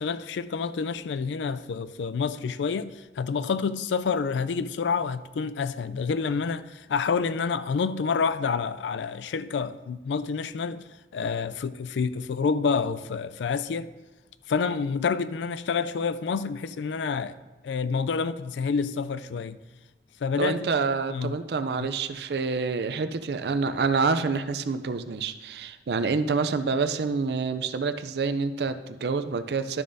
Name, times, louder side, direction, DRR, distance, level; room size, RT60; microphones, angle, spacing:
voice 1, 0.0-10.8 11.1-13.9 14.5-17.4 17.6-19.6 20.2-20.7 21.1-21.4 21.8-21.9, left 5 dB, 80° left, 0.3 m, -28 dB
voice 2, 20.4-29.8, right 4 dB, 60° right, 0.4 m, -27 dB
11.5 x 6.8 x 2.6 m
head